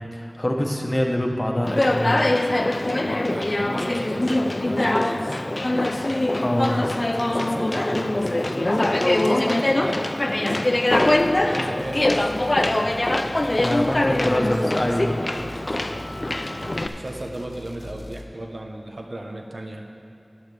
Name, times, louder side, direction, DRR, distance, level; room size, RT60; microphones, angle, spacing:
voice 1, 0.0-2.2 6.4-6.8 8.1-8.2 13.6-15.1, left 1 dB, 30° left, 1 dB, 1.3 m, -25 dB
Conversation, 1.6-16.9, left 1 dB, 50° left, 0.5 m, -23 dB
voice 2, 3.0-5.4 7.1-10.0 10.7-12.3 13.7-14.5 14.9-15.8 16.6-19.8, right 1 dB, 75° right, 2 dB, 1.0 m, -36 dB
sound 1, 10.9-11.4 11.8-18.3, equal, 90° left, 1.0 m, -43 dB
13.0 x 11.0 x 3.5 m, 3.0 s
wide cardioid pair, 45°, 0 cm